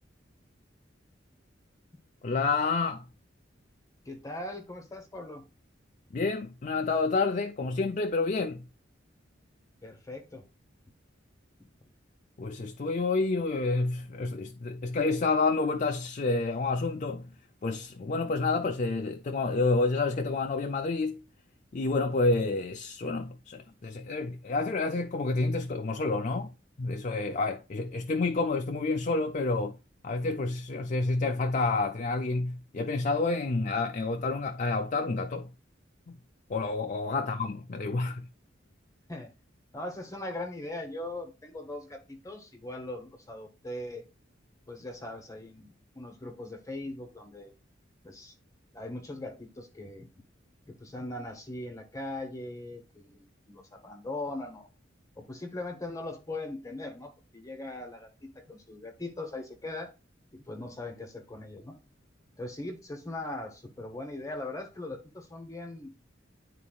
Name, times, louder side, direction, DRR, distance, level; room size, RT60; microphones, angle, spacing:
voice 1, 2.2-3.0 6.1-8.7 12.4-17.3 17.6-21.2 21.7-26.5 26.8-29.8 30.0-35.5 36.1-36.2 36.5-38.3, left 3 dB, 40° left, 0.4 m, -29 dB
voice 2, 4.0-5.5 9.8-10.4 37.2-37.3 39.1-39.3 39.7-44.0 44.7-47.5 48.0-48.4 48.7-50.1 50.7-54.7 55.2-59.9 60.3-61.8 62.4-65.9, left 2 dB, 15° left, 0.9 m, -40 dB
10.0 x 4.1 x 2.3 m
head